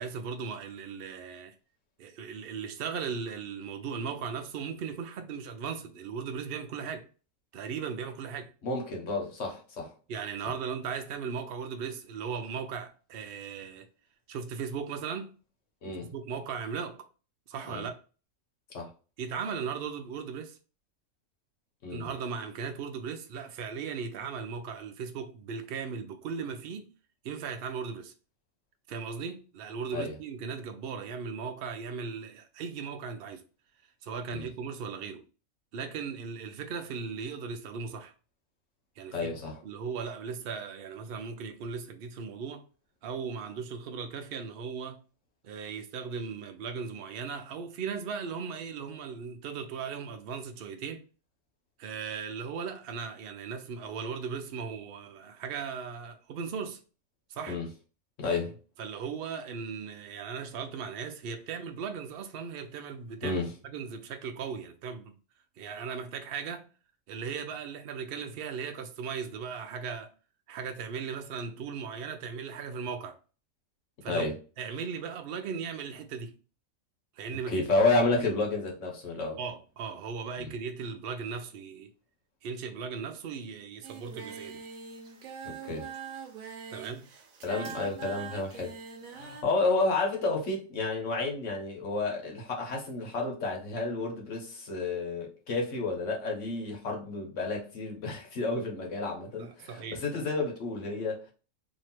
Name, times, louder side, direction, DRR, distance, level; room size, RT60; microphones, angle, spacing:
voice 1, 0.0-1.5 2.0-7.1 7.5-8.5 10.1-13.9 14.3-15.4 16.1-17.1 17.5-18.0 19.2-20.6 21.9-26.9 27.2-28.1 28.9-33.4 34.0-35.2 35.7-38.1 39.0-39.3 39.6-42.7 43.0-45.0 45.4-51.0 51.8-56.8 57.3-57.6 58.8-63.4 63.6-65.1 65.6-66.7 67.1-70.1 70.5-73.2 74.0-74.3 74.6-76.4 77.1-77.7 78.0-78.1 79.4-81.9 82.4-84.6 86.7-87.1 99.4-100.1, right 6 dB, 55° right, 0.7 m, -37 dB
voice 2, 8.6-9.9 15.8-16.1 17.7-17.8 18.7-18.9 21.8-22.1 29.9-30.2 34.3-34.5 39.1-39.6 57.5-57.7 58.2-58.5 63.2-63.5 74.1-74.3 77.5-79.4 80.4-80.5 85.4-85.9 87.4-88.7 89.1-101.3, left 3 dB, 65° left, 1.4 m, -31 dB
Singing, 83.8-89.4, right 6 dB, 90° right, 1.2 m, -43 dB
3.2 x 2.7 x 4.3 m
omnidirectional pair, 1.4 m